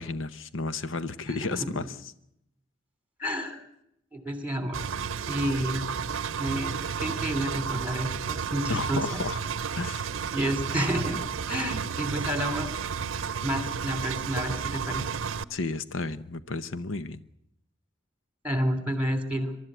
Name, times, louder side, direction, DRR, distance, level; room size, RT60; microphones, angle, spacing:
voice 1, 0.0-2.1 8.7-9.5 9.7-10.0 15.5-17.2, left 3 dB, 85° left, 13 dB, 0.8 m, -32 dB
voice 2, 1.4-1.9 3.2-3.6 4.1-4.8 5.3-5.9 6.4-9.0 10.3-11.2 11.5-12.7 13.4-15.0 18.4-19.5, equal, 10° right, 8 dB, 2.9 m, -30 dB
Engine, 4.7-15.4, right 6 dB, 90° right, 0.7 m, -32 dB
23.5 x 12.5 x 9.3 m, 0.80 s
head